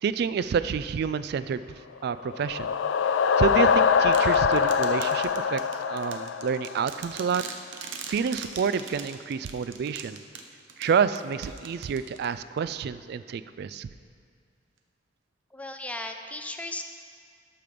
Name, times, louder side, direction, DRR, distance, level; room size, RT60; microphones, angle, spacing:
voice 1, 0.0-1.6 2.0-2.7 3.4-5.6 5.9-7.4 8.1-10.2 10.8-13.9, right 6 dB, 60° right, 14 dB, 0.3 m, -28 dB
sound 1, 2.1-7.0, left 6 dB, 80° left, 0.4 m, -23 dB
sound 2, 4.1-12.6, right 5 dB, 90° right, 0.8 m, -42 dB
voice 2, 15.5-16.9, left 2 dB, 10° left, 5 dB, 0.4 m, -36 dB
12.5 x 5.1 x 5.2 m, 2.2 s
head